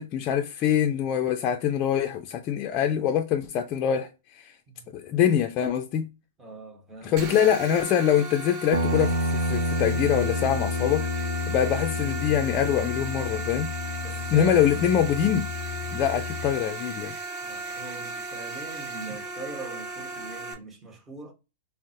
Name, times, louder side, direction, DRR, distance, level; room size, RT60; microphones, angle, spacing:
voice 1, 0.0-4.5 4.9-6.1 7.0-11.1 11.5-13.7 14.3-15.5 15.9-17.1, left 9 dB, 35° left, 0.4 m, -24 dB
voice 2, 4.7-5.0 6.4-7.5 14.0-14.9 15.8-16.0 17.4-21.3, right 3 dB, 20° right, 1.0 m, -42 dB
sound 1, 7.2-20.5, right 3 dB, 50° right, 0.8 m, -36 dB
Guitar, 8.7-16.6, left 3 dB, 85° right, 0.7 m, -30 dB
3.7 x 2.0 x 2.7 m
hypercardioid pair, 125°, 0 cm